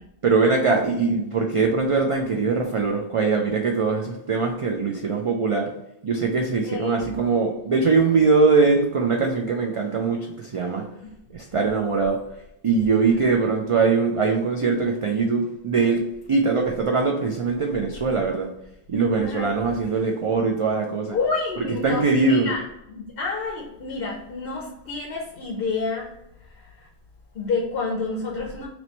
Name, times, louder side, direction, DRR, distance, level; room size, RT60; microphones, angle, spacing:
voice 1, 0.2-5.7 6.0-10.9 11.3-12.2 12.6-18.5 18.9-21.2 21.8-22.5, right 4 dB, 55° right, 1 dB, 0.3 m, -22 dB
voice 2, 6.6-7.1 11.0-11.1 19.1-19.6 21.1-22.6 22.9-26.1 26.4-26.9 27.3-28.7, left 4 dB, 65° left, -2 dB, 0.9 m, -29 dB
3.0 x 3.0 x 4.2 m, 0.85 s
omnidirectional pair, 1.1 m